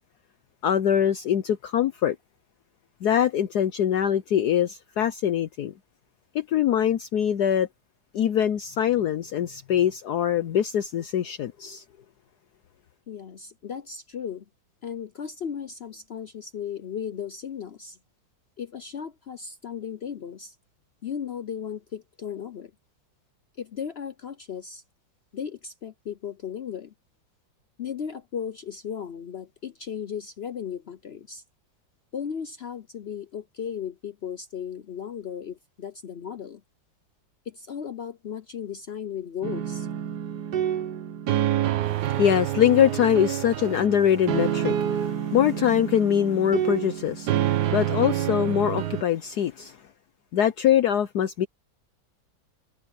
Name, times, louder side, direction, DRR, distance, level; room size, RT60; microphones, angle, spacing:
voice 1, 0.6-2.2 3.0-5.7 6.3-7.7 8.1-11.8 41.9-49.8 50.3-51.5, left 10 dB, 65° left, 1.2 m, -23 dB
voice 2, 13.1-14.4 14.8-18.0 18.6-20.6 21.0-22.7 23.6-24.8 25.3-26.9 27.8-31.4 32.1-36.6 37.5-39.9, left 8 dB, 85° left, 0.5 m, -36 dB
sound 1, 39.4-49.0, right 11 dB, 60° right, 1.4 m, -27 dB
omnidirectional pair, 2.1 m